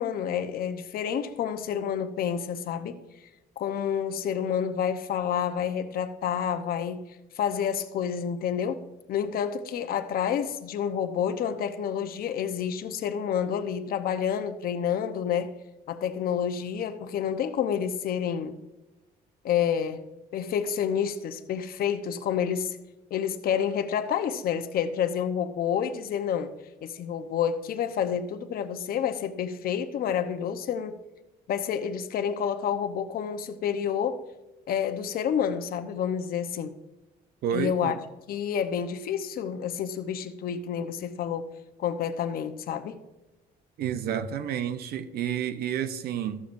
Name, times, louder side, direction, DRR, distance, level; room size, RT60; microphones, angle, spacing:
voice 1, 0.0-3.0 3.6-7.0 7.3-8.8 9.1-15.6 15.9-18.6 19.4-20.0 20.3-22.8 23.1-26.5 26.8-31.0 31.5-34.2 34.7-36.8 37.5-38.0 38.3-41.5 41.8-43.0, left 8 dB, 60° left, 0.9 m, -29 dB
voice 2, 37.4-38.0 43.8-46.4, right 9 dB, 65° right, 0.8 m, -30 dB
14.0 x 6.9 x 2.6 m
cardioid pair, 110°, 17 cm